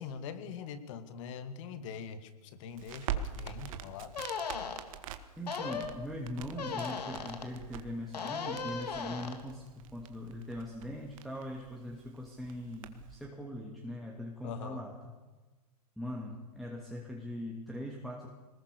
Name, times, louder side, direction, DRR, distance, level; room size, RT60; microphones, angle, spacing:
voice 1, 0.0-4.3 14.4-14.8, left 6 dB, 50° left, 10 dB, 2.5 m, -43 dB
Crackle, 2.7-13.3, right 8 dB, 55° right, 1.9 m, -44 dB
sound 1, 3.4-3.5 4.1-4.8 5.5-5.9 6.6-7.5 8.1-9.4, left 5 dB, 80° left, 3.4 m, -37 dB
voice 2, 5.4-15.0 16.0-18.3, left 1 dB, ahead, -2 dB, 2.7 m, -41 dB
22.5 x 20.0 x 7.0 m, 1.3 s
hypercardioid pair, 125°, 21 cm